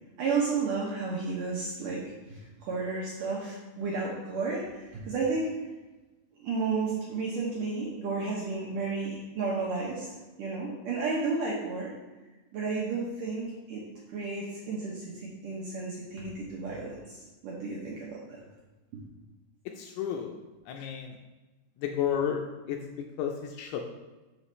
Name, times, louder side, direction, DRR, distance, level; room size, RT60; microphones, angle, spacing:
voice 1, 0.2-5.5 6.4-10.1 10.4-11.9 12.5-18.4 18.9-19.0, right 4 dB, 70° right, -4 dB, 2.1 m, -32 dB
voice 2, 19.8-20.3 20.7-21.2 21.8-22.4 22.7-22.8 23.2-23.8, left 9 dB, 80° left, 3 dB, 2.4 m, -31 dB
6.2 x 4.8 x 5.5 m, 1.1 s
omnidirectional pair, 4.9 m